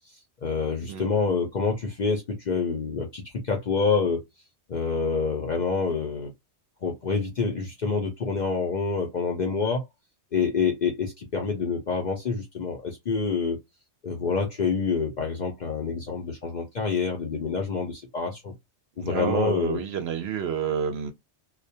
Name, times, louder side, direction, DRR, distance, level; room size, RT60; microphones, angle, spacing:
voice 1, 0.4-4.2 4.7-6.3 6.8-9.8 10.3-13.6 14.0-18.5 19.0-19.8, left 5 dB, 55° left, 0.5 m, -27 dB
voice 2, 19.0-21.1, right 7 dB, 65° right, 0.8 m, -29 dB
2.3 x 2.1 x 2.7 m
omnidirectional pair, 1.2 m